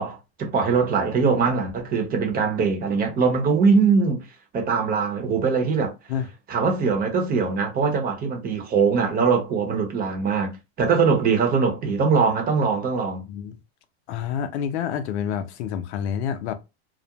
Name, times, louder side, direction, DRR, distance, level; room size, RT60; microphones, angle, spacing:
voice 1, 0.0-4.2 4.5-5.9 6.5-13.2, right 5 dB, 25° right, 0.8 m, -22 dB
voice 2, 13.3-13.6 14.1-16.5, left 8 dB, 75° left, 0.6 m, -28 dB
2.4 x 2.1 x 2.8 m
supercardioid pair, 125°, 34 cm